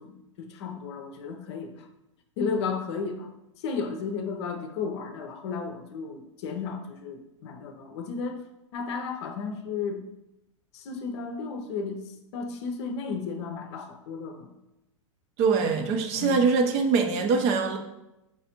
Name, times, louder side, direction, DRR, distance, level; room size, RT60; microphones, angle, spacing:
voice 1, 0.0-1.9 2.4-3.3 3.6-8.4 8.7-10.0 10.7-12.0 12.3-14.5 16.2-16.4, left 5 dB, 55° left, 5 dB, 0.6 m, -33 dB
voice 2, 15.4-17.8, right 5 dB, 40° right, 5 dB, 0.6 m, -23 dB
4.7 x 3.2 x 2.9 m, 0.90 s
hypercardioid pair, 100°, 17 cm